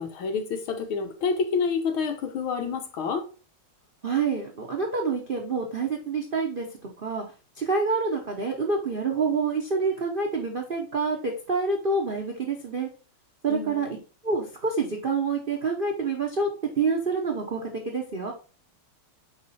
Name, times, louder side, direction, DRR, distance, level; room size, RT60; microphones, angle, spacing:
voice 1, 0.0-3.3 13.5-13.9, left 5 dB, 75° left, 1.8 m, -28 dB
voice 2, 4.0-6.7 7.0-7.2 7.6-12.9 13.4-13.9 14.2-16.5 16.8-18.3, right 4 dB, 90° right, 0.4 m, -27 dB
4.9 x 4.8 x 4.1 m
omnidirectional pair, 2.4 m